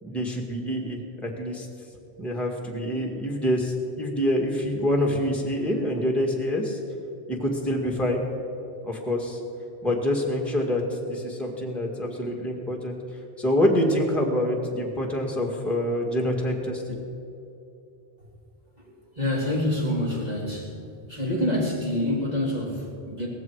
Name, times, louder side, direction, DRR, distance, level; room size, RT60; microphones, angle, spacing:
voice 1, 0.0-1.7 2.2-6.8 7.3-8.2 8.8-9.4 9.8-12.9 13.4-17.0, left 1 dB, ahead, 0 dB, 1.8 m, -26 dB
voice 2, 18.8-20.7 21.1-23.3, left 1 dB, 40° right, -4 dB, 3.4 m, -27 dB
18.0 x 15.0 x 4.7 m, 2.8 s
omnidirectional pair, 1.1 m